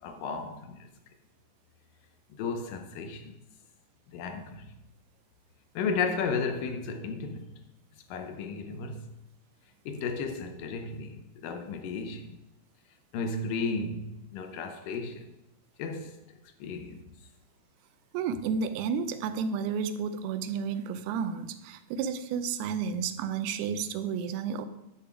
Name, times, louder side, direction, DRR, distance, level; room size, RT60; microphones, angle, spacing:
voice 1, 0.0-0.9 2.3-3.4 4.1-4.7 5.8-7.5 8.1-9.0 9.9-12.4 13.1-15.3 15.8-16.2 16.6-17.1, left 4 dB, 75° left, 2.1 m, -34 dB
voice 2, 18.1-24.7, right 6 dB, 80° right, 2.6 m, -31 dB
11.5 x 6.9 x 5.0 m
omnidirectional pair, 4.7 m